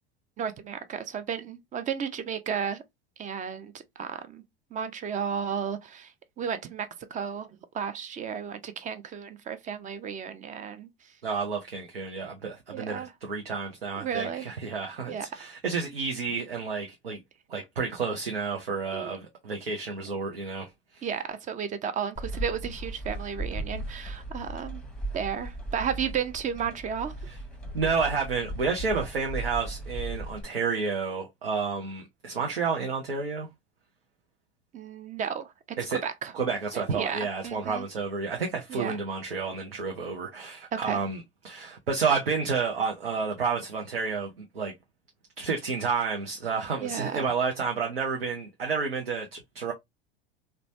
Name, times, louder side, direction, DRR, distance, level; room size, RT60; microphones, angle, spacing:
voice 1, 0.4-2.8 3.2-4.4 4.7-6.1 6.4-10.9 12.7-13.1 14.0-14.5 15.1-15.3 18.9-19.1 21.0-24.8 25.1-27.1 34.7-36.3 36.7-37.9 38.7-39.0 40.7-41.0 46.8-47.3, right 7 dB, 25° right, 0.4 m, -33 dB
voice 2, 11.2-17.2 17.5-21.1 27.3-27.4 27.7-33.5 35.8-36.0 36.3-44.7 45.4-49.7, right 5 dB, 90° right, 0.6 m, -30 dB
sound 1, 22.2-30.4, right 1 dB, 5° left, 0.8 m, -37 dB
3.0 x 2.1 x 2.6 m
hypercardioid pair, 80°, 29 cm